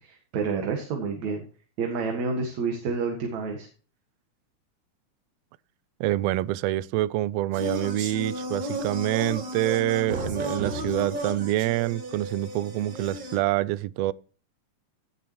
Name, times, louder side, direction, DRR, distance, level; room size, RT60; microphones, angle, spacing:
voice 1, 0.0-1.4 1.8-3.7, right 4 dB, 70° right, 3.0 m, -29 dB
voice 2, 6.0-14.1, right 16 dB, 85° right, 1.4 m, -26 dB
sound 1, 7.5-13.4, right 1 dB, 45° right, 2.1 m, -33 dB
17.0 x 6.8 x 3.0 m
omnidirectional pair, 3.4 m